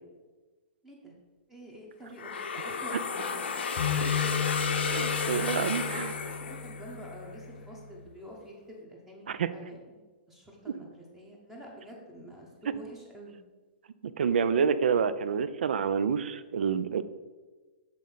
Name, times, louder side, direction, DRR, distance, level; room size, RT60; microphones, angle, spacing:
voice 1, 1.5-3.9 4.2-4.3 5.3-10.0 10.3-13.3, equal, 5° right, -2 dB, 0.8 m, -48 dB
sound 1, 2.2-7.1, left 5 dB, 85° left, 0.8 m, -33 dB
sound 2, 3.8-8.0, left 7 dB, 55° left, 0.7 m, -34 dB
voice 2, 4.9-6.1 9.3-9.5 14.2-17.0, right 6 dB, 75° right, 14 dB, 0.5 m, -28 dB
7.6 x 3.7 x 5.5 m, 1.3 s
hypercardioid pair, 175°, 6 cm